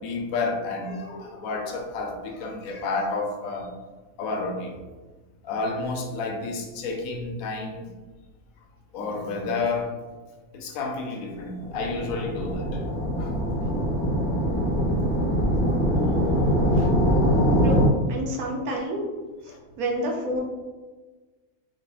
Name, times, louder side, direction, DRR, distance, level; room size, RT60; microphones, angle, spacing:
voice 1, 0.0-3.7 4.2-4.8 5.4-7.9 8.9-9.9 10.5-12.8 13.2-13.4 16.7-16.9 19.5-19.6, left 3 dB, 85° left, 3 dB, 1.0 m, -30 dB
sound 1, 11.5-17.9, equal, 20° left, 0.5 m, -23 dB
voice 2, 17.6-19.0 19.4-20.4, right 1 dB, 90° right, -1 dB, 1.2 m, -29 dB
3.4 x 3.4 x 2.4 m, 1.3 s
omnidirectional pair, 1.5 m